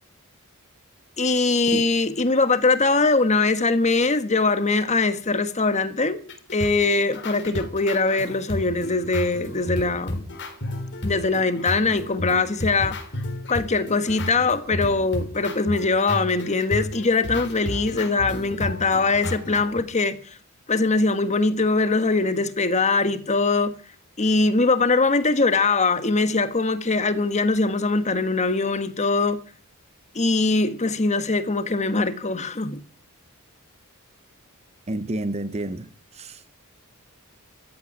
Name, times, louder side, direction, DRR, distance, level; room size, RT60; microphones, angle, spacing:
voice 1, 1.2-6.2 6.5-10.2 11.0-13.0 13.5-20.4 20.7-23.7 24.2-29.4 30.1-32.8, left 3 dB, 30° left, 1.4 m, -22 dB
sound 1, 6.3-19.8, left 1 dB, 55° left, 3.7 m, -32 dB
voice 2, 34.9-36.4, right 1 dB, 30° right, 0.8 m, -30 dB
14.5 x 8.6 x 9.8 m
head